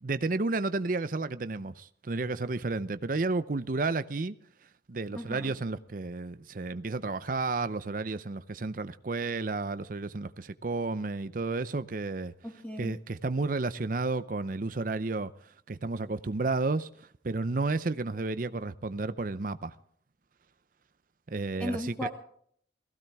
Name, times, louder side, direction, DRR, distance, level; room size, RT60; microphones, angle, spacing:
voice 1, 0.0-4.4 4.9-12.3 12.8-15.3 15.7-19.8 21.3-22.1, right 3 dB, 50° right, 0.6 m, -32 dB
voice 2, 5.1-5.5 12.4-13.0 21.6-22.1, equal, 5° left, 1.9 m, -36 dB
18.5 x 15.5 x 3.5 m
head